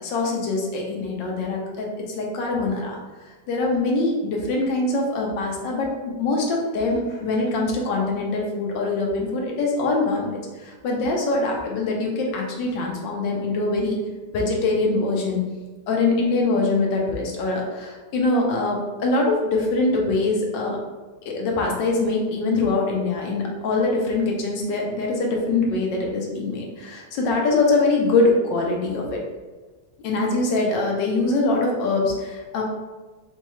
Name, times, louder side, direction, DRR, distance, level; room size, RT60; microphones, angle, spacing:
voice 1, 0.0-3.0 3.5-10.4 10.8-14.0 14.3-15.4 15.9-20.8 21.3-29.2 30.0-32.6, left 3 dB, 65° left, -1 dB, 1.2 m, -23 dB
5.4 x 2.3 x 3.0 m, 1.3 s
omnidirectional pair, 2.4 m